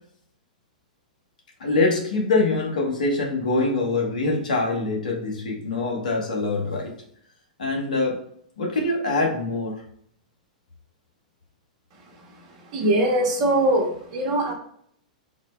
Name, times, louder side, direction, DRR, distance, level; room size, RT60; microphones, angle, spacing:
voice 1, 1.6-6.9 7.6-8.2 8.6-9.8, left 3 dB, 75° left, 0 dB, 1.1 m, -24 dB
voice 2, 12.7-14.5, right 1 dB, 50° right, 0 dB, 1.2 m, -21 dB
4.1 x 2.0 x 4.3 m, 0.66 s
hypercardioid pair, 105°, 4 cm